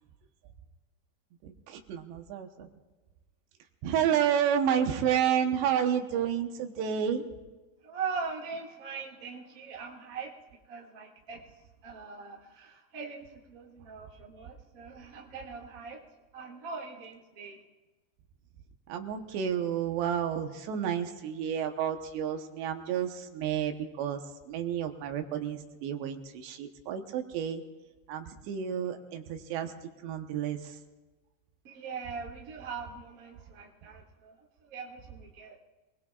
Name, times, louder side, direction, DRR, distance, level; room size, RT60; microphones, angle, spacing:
voice 1, 1.4-2.7 3.8-7.2 18.9-27.6 28.1-30.8, right 9 dB, 80° right, 5 dB, 3.2 m, -30 dB
voice 2, 7.8-10.3 10.7-11.4 11.8-16.0 16.3-17.6 31.6-35.6, right 5 dB, 35° right, -2 dB, 1.5 m, -41 dB
28.5 x 20.5 x 2.4 m, 1.3 s
omnidirectional pair, 4.9 m